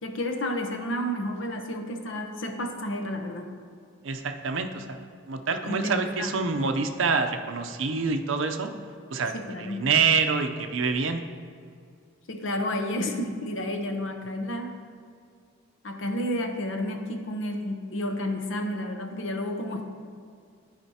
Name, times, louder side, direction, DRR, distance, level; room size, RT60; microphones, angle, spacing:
voice 1, 0.0-3.5 5.6-6.6 9.3-9.9 12.3-14.7 15.8-19.9, left 1 dB, 65° left, 4 dB, 0.8 m, -31 dB
voice 2, 4.0-8.7 9.1-11.2, right 5 dB, 65° right, 6 dB, 0.5 m, -26 dB
13.5 x 5.0 x 2.8 m, 2.3 s
head